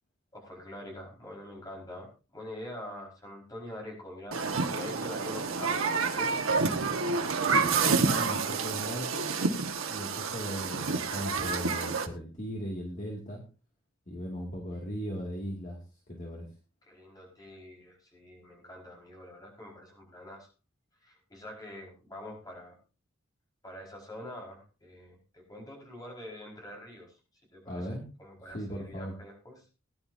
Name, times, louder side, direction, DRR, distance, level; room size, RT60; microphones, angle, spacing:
voice 1, 0.3-6.5 16.9-20.5 21.0-22.7 23.6-27.2 27.5-29.6, left 1 dB, 20° left, -1 dB, 4.8 m, -45 dB
Human group actions, 4.3-12.1, right 4 dB, 90° right, 1.4 m, -29 dB
voice 2, 7.5-9.3 9.9-13.4 14.1-16.5 27.7-28.1 28.5-29.2, equal, 40° left, -1 dB, 2.2 m, -38 dB
19.5 x 10.5 x 2.7 m, 0.33 s
head